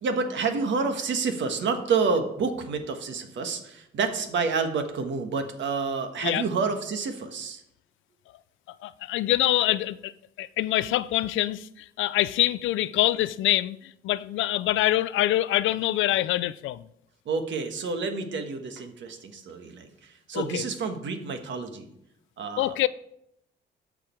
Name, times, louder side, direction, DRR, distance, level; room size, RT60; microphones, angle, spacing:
voice 1, 0.0-7.6 17.2-21.9 22.4-22.7, right 4 dB, 70° right, 1.4 m, -29 dB
voice 2, 8.8-10.1 10.4-16.9 20.3-20.6 22.6-22.9, left 15 dB, 80° left, 0.4 m, -25 dB
13.5 x 5.0 x 4.5 m
cardioid pair, 90°, 20 cm